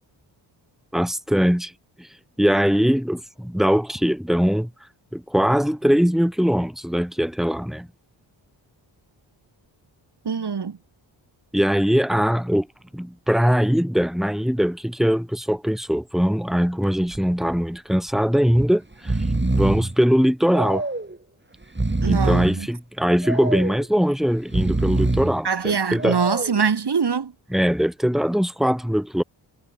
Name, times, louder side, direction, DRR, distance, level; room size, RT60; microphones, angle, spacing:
voice 1, 0.9-1.7 2.0-2.1 2.4-4.7 5.1-7.9 11.5-12.7 12.9-19.2 19.5-20.9 22.1-26.2 27.5-29.2, equal, ahead, 3.5 m, -21 dB
voice 2, 10.2-10.8 22.0-22.7 25.4-27.3, right 6 dB, 55° right, 3.3 m, -23 dB
Breathing, 16.8-17.2 17.5-17.6 18.5-18.7 18.9-19.9 20.5-21.2 21.6-22.6 23.2-23.9 24.4-25.4 26.0-26.6, right 2 dB, 25° right, 6.4 m, -24 dB
cardioid pair, 50°, 47 cm